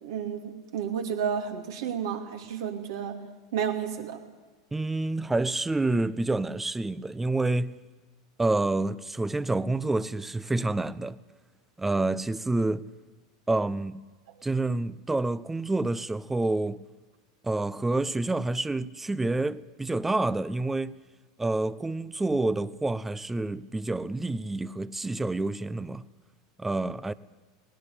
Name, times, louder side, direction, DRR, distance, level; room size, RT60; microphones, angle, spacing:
voice 1, 0.0-3.2 3.5-4.2, right 7 dB, 70° right, 2.8 m, -31 dB
voice 2, 4.7-7.8 8.4-11.2 11.8-12.9 13.5-14.1 14.4-16.8 17.4-21.0 21.4-26.1 26.6-27.1, right 2 dB, 10° right, 0.7 m, -28 dB
19.5 x 18.0 x 8.6 m
hypercardioid pair, 85°, 2 cm